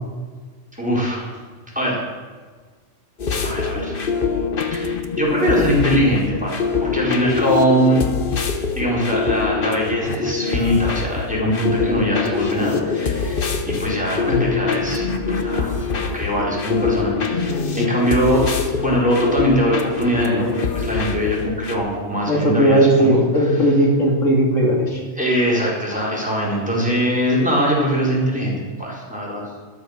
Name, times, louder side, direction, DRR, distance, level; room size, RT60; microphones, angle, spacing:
voice 1, 0.8-1.3 1.7-2.0 3.4-3.9 4.7-8.0 8.7-18.5 18.8-20.5 20.7-23.2 25.2-29.5, equal, 5° right, -5 dB, 4.3 m, -22 dB
sound 1, 3.2-21.7, left 5 dB, 45° left, 1.2 m, -24 dB
voice 2, 22.2-25.0, right 1 dB, 90° left, 0 dB, 2.9 m, -17 dB
12.5 x 12.0 x 6.5 m, 1.5 s
omnidirectional pair, 1.3 m